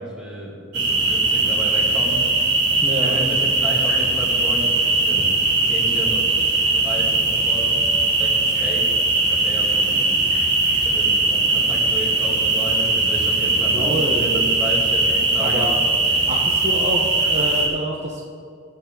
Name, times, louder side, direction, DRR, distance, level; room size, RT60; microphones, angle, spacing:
voice 1, 0.0-2.2 3.0-5.4 5.6-6.2 6.7-7.7 8.1-8.9 9.3-10.2 10.8-15.7, equal, 5° right, -5 dB, 2.7 m, -32 dB
sound 1, 0.7-17.7, right 3 dB, 60° right, 3.3 m, -20 dB
voice 2, 2.8-3.2 13.7-14.2 15.4-15.8 16.3-18.2, equal, 35° right, -2 dB, 1.1 m, -27 dB
21.0 x 7.0 x 3.9 m, 2.2 s
head